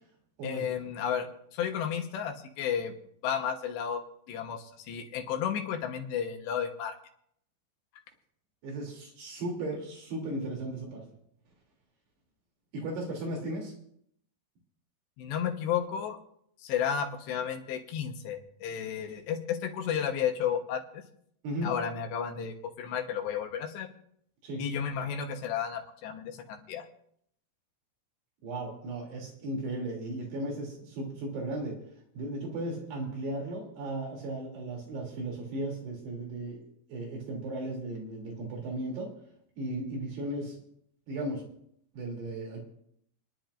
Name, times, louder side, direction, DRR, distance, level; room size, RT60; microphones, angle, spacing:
voice 1, 0.4-2.9 3.2-4.0 4.3-7.0 15.2-16.2 16.6-21.0 21.6-23.9 24.6-26.9, left 8 dB, 80° left, 4 dB, 3.3 m, -32 dB
voice 2, 8.6-11.1 12.7-13.7 21.4-21.7 24.4-24.6 28.4-31.8 32.2-36.6 36.9-39.1 39.6-40.6 41.1-41.4 41.9-42.6, right 1 dB, 70° right, -1 dB, 5.1 m, -36 dB
30.0 x 10.5 x 2.6 m, 0.69 s
omnidirectional pair, 5.0 m